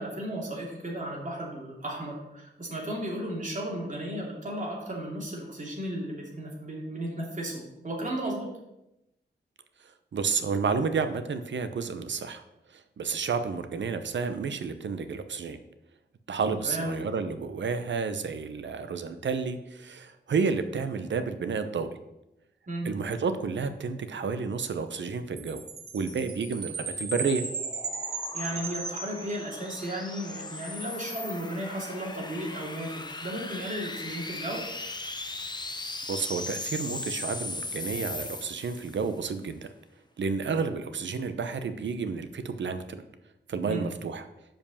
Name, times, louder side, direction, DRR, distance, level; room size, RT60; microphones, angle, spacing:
voice 1, 0.0-8.6 16.6-16.9 22.7-22.9 28.3-34.7 43.6-43.9, right 1 dB, 45° right, -3 dB, 2.7 m, -34 dB
voice 2, 9.8-12.4 12.7-15.6 16.3-21.9 22.8-25.6 25.9-27.4 36.1-39.7 40.2-43.0 43.5-44.3, right 5 dB, 80° right, 9 dB, 0.8 m, -31 dB
Chime, 25.4-29.9, right 3 dB, 60° right, 1.8 m, -36 dB
sound 1, 26.9-39.1, left 2 dB, 25° left, 0.8 m, -39 dB
7.1 x 5.2 x 7.1 m, 0.90 s
wide cardioid pair, 100°, 19 cm